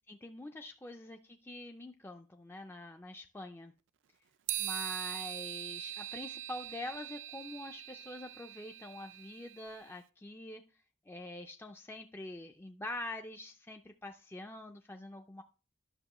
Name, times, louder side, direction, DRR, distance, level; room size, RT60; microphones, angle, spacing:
voice 1, 0.1-3.7 4.6-10.6 11.1-15.4, left 2 dB, 10° left, 4 dB, 0.4 m, -45 dB
sound 1, 4.5-9.8, right 12 dB, 70° right, 0.4 m, -41 dB
11.0 x 6.1 x 3.0 m, 0.33 s
head